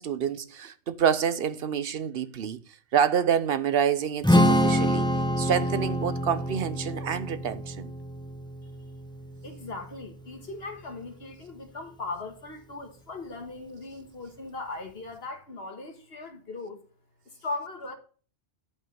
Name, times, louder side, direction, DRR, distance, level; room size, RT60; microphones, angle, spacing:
voice 1, 0.0-2.6 2.9-5.1 5.4-7.9, right 8 dB, 60° right, 0.9 m, -27 dB
Strum, 4.2-10.5, equal, 5° left, 0.9 m, -26 dB
voice 2, 9.4-16.8 17.4-17.9, left 3 dB, 60° left, 1.9 m, -38 dB
10.5 x 5.5 x 5.4 m
omnidirectional pair, 1.2 m